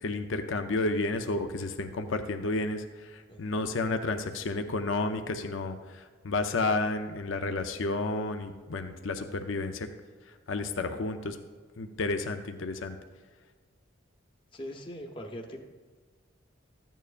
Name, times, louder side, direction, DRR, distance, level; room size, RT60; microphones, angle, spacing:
voice 1, 0.0-9.9 10.5-11.4 11.8-13.0, left 2 dB, 75° left, 7 dB, 0.6 m, -31 dB
voice 2, 14.5-15.6, equal, 25° left, 1 dB, 0.9 m, -41 dB
14.0 x 9.1 x 2.5 m, 1.5 s
head